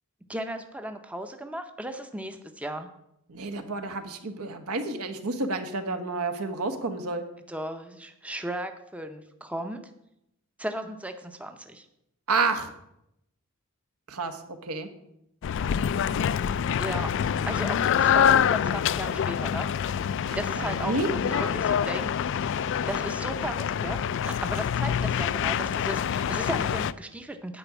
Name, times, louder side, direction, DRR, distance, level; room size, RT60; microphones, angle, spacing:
voice 1, 0.3-2.9 7.5-9.8 10.6-11.9 16.8-17.1 17.5-19.7 20.3-21.2 21.5-22.1 22.9-27.6, right 1 dB, 5° right, 6 dB, 0.6 m, -35 dB
voice 2, 3.3-7.2 12.3-12.7 14.1-14.9 20.3-21.6, right 3 dB, 80° right, 7 dB, 1.2 m, -30 dB
sound 1, 15.4-26.9, left 8 dB, 55° left, 0.3 m, -26 dB
10.0 x 5.0 x 8.1 m, 0.81 s
head